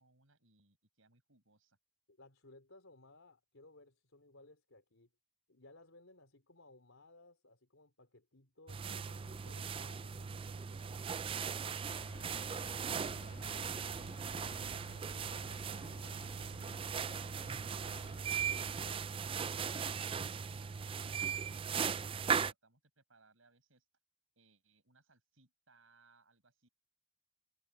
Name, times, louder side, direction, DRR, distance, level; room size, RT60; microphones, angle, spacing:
voice 1, 0.0-1.8 19.5-23.8 24.4-26.7, right 3 dB, 80° right, 6.9 m, -68 dB
voice 2, 2.1-5.1 5.5-11.0 15.3-15.6, left 2 dB, 75° left, 4.1 m, -61 dB
sound 1, 8.7-22.5, right 6 dB, 25° right, 0.4 m, -38 dB
sound 2, 12.0-18.9, left 2 dB, 50° left, 1.5 m, -54 dB
head